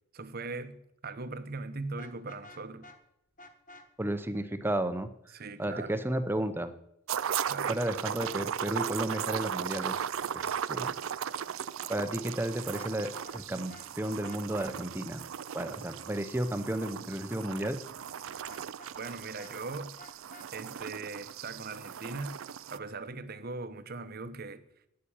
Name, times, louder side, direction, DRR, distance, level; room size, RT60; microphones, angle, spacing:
voice 1, 0.1-2.9 5.3-6.0 7.5-7.8 19.0-19.9 20.5-22.4 22.7-24.6, right 3 dB, 45° right, 0.8 m, -40 dB
Vehicle horn car horn honking, 1.9-3.0 3.4-3.9 7.3-8.0 8.2-8.3 8.8-9.2 12.6-13.4 13.7-13.9 14.2-14.7 18.5-19.5 20.0-20.5, left 1 dB, 35° left, 1.2 m, -51 dB
voice 2, 4.0-5.1 5.6-6.7 7.7-10.0 10.3-10.9 11.9-15.2 15.5-17.8, right 1 dB, 10° right, 0.7 m, -33 dB
sound 1, 7.1-22.8, right 8 dB, 70° right, 0.4 m, -37 dB
9.2 x 8.5 x 8.7 m
head